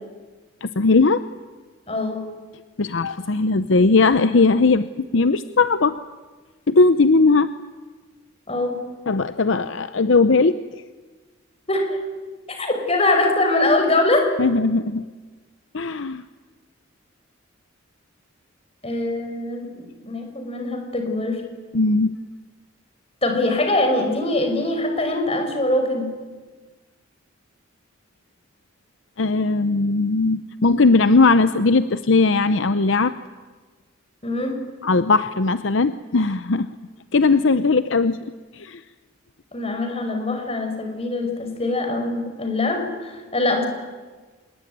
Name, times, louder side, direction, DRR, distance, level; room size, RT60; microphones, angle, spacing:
voice 1, 0.6-1.2 2.8-6.0 6.7-7.5 9.1-10.8 14.4-15.1 15.7-16.2 21.7-22.1 29.2-33.1 34.8-36.7 37.1-38.2 38.5-38.8, left 3 dB, 65° left, 12 dB, 0.7 m, -18 dB
voice 2, 1.9-2.2 8.5-8.8 11.7-12.0 12.6-14.3 18.8-19.7 20.1-21.4 23.2-26.1 34.2-34.6 39.5-43.7, left 2 dB, 30° left, 4 dB, 5.4 m, -22 dB
25.5 x 21.0 x 9.4 m, 1.4 s
head